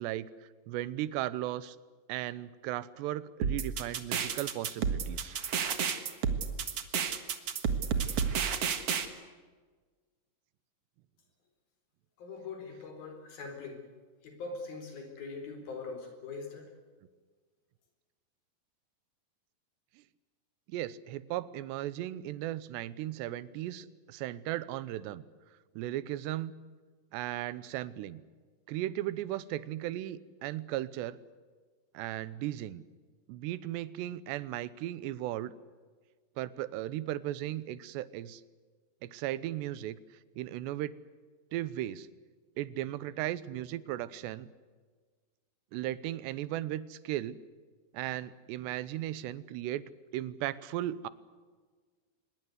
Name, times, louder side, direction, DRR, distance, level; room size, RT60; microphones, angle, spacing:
voice 1, 0.0-1.8 2.1-5.4 20.7-25.2 25.8-26.5 27.1-28.2 28.7-31.2 31.9-32.8 33.3-35.5 36.4-38.4 39.0-40.0 40.4-40.9 41.5-42.1 42.6-44.5 45.7-47.4 47.9-49.8 50.1-51.1, right 14 dB, 85° right, 17 dB, 3.0 m, -36 dB
sound 1, 3.4-9.0, right 7 dB, 55° right, 1.7 m, -31 dB
voice 2, 12.2-13.8 14.2-16.7, left 4 dB, 60° left, 5 dB, 5.8 m, -42 dB
25.0 x 21.5 x 8.1 m, 1.5 s
omnidirectional pair, 4.9 m